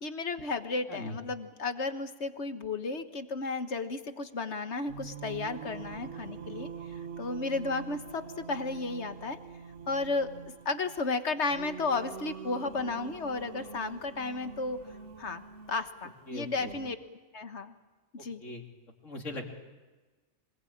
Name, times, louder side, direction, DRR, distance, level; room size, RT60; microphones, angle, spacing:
voice 1, 0.0-6.7 7.2-8.2 8.5-9.4 9.9-10.3 10.6-14.8 15.2-17.0 17.3-17.7 18.1-18.4, left 3 dB, 65° left, 9 dB, 1.6 m, -33 dB
Singing, 4.9-17.0, right 6 dB, 70° right, 1.7 m, -45 dB
voice 2, 16.3-16.7 18.4-18.7 19.0-19.5, left 2 dB, 90° left, 1 dB, 3.4 m, -39 dB
25.5 x 20.5 x 8.7 m, 1.3 s
omnidirectional pair, 1.3 m